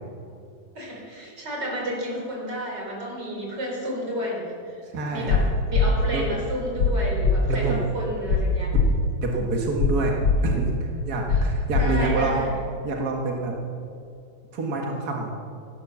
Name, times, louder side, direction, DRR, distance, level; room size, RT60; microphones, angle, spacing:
voice 1, 0.7-4.8 5.1-8.7 11.3-11.4 11.7-12.6, equal, 30° right, -2 dB, 4.5 m, -31 dB
voice 2, 4.9-5.4 6.1-6.2 7.4-7.9 9.2-10.1 10.4-12.4 12.8-13.5 14.5-15.3, right 3 dB, 60° right, 0 dB, 1.0 m, -27 dB
sound 1, 5.3-5.4 5.7-5.9 6.8-6.9 7.2-7.3 8.3-8.4 8.7-8.9 9.8-9.9 10.2-10.3 11.3-11.4 11.7-11.8, left 7 dB, 50° left, 2.2 m, -20 dB
15.5 x 11.5 x 7.0 m, 2.4 s
omnidirectional pair, 4.3 m